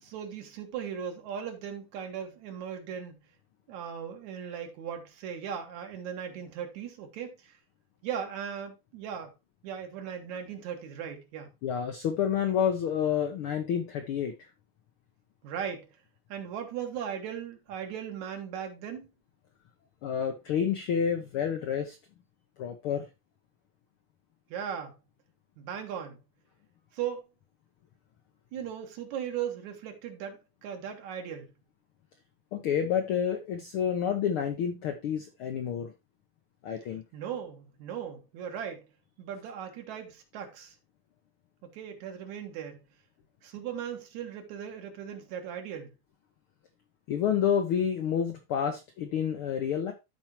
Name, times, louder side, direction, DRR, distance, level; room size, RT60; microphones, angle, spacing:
voice 1, 0.0-3.2 3.7-7.6 8.0-9.3 9.6-11.5 15.4-15.9 16.3-19.1 24.5-24.9 25.6-26.2 26.9-27.3 28.5-31.5 37.1-38.9 39.2-40.8 41.7-42.8 43.4-45.9, right 8 dB, 75° right, 2.6 m, -38 dB
voice 2, 11.6-14.5 20.0-22.0 22.6-23.1 32.5-35.9 36.6-37.0 47.1-49.9, left 8 dB, 75° left, 1.2 m, -29 dB
13.0 x 4.5 x 2.9 m
omnidirectional pair, 3.5 m